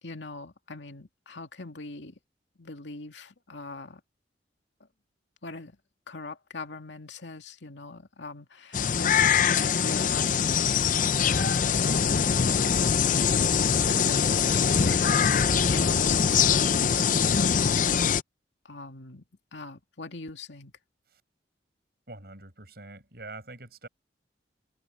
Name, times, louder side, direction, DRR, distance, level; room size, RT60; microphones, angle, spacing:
voice 1, 0.0-2.2 2.6-4.0 4.8-4.9 5.4-5.8 6.1-13.0 13.5-18.2 18.6-19.2 19.5-20.7, left 3 dB, 90° left, 2.4 m, -42 dB
sound 1, 8.7-18.2, left 7 dB, 45° left, 0.5 m, -23 dB
voice 2, 22.1-23.9, right 2 dB, 60° right, 8.0 m, -44 dB
head